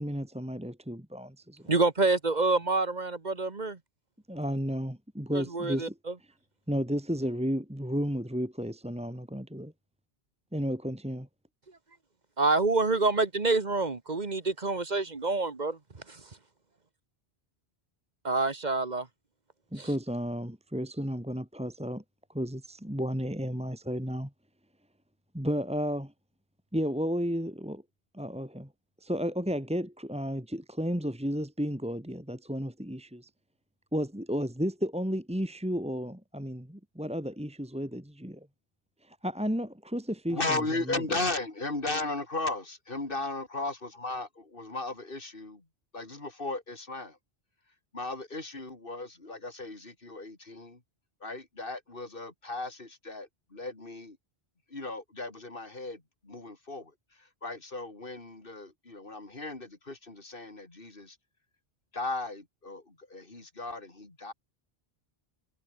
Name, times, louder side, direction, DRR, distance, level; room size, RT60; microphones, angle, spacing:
voice 1, 0.0-1.7 4.3-6.0 6.7-9.7 10.5-11.3 19.7-22.0 22.3-24.3 25.3-26.1 26.7-27.8 28.1-28.7 29.0-33.3 33.9-38.5 39.0-41.0, equal, 5° right, 2.4 m, -33 dB
voice 2, 1.7-3.8 5.3-5.9 12.4-15.8 16.1-16.2 18.2-19.1 19.8-19.9, right 3 dB, 45° right, 1.6 m, -27 dB
voice 3, 40.3-44.3 44.6-45.6 45.9-47.2 47.9-50.8 51.2-54.2 54.7-56.9 57.4-61.2 61.9-64.3, left 2 dB, 60° left, 3.9 m, -36 dB
omnidirectional pair, 1.0 m